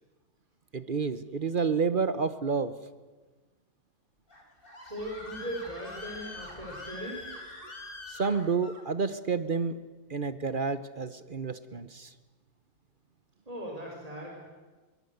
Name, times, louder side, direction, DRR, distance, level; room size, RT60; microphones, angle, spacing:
voice 1, 0.7-2.7 8.1-9.8 10.1-12.1, right 5 dB, 45° right, 13 dB, 0.7 m, -29 dB
Screaming, 4.3-8.8, left 2 dB, 30° left, 4.2 m, -44 dB
voice 2, 4.8-7.3 13.5-14.4, equal, 20° right, -1 dB, 3.9 m, -39 dB
23.0 x 20.5 x 8.0 m, 1.3 s
omnidirectional pair, 1.9 m